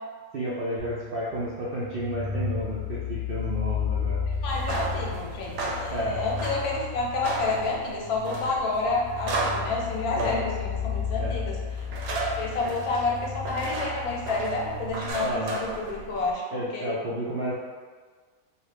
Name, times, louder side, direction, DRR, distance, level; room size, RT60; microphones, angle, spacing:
voice 1, 0.3-4.2 5.9-6.2 10.2-10.3 11.2-11.4 15.2-15.6 16.5-17.5, right 1 dB, 75° right, -7 dB, 0.5 m, -31 dB
sound 1, 0.8-15.1, left 6 dB, 40° left, 0.5 m, -34 dB
voice 2, 4.4-11.6 12.1-16.9, left 3 dB, 85° left, -2 dB, 1.1 m, -29 dB
sound 2, 4.4-16.3, right 2 dB, 90° right, 1.1 m, -35 dB
2.6 x 2.4 x 3.2 m, 1.5 s
omnidirectional pair, 1.5 m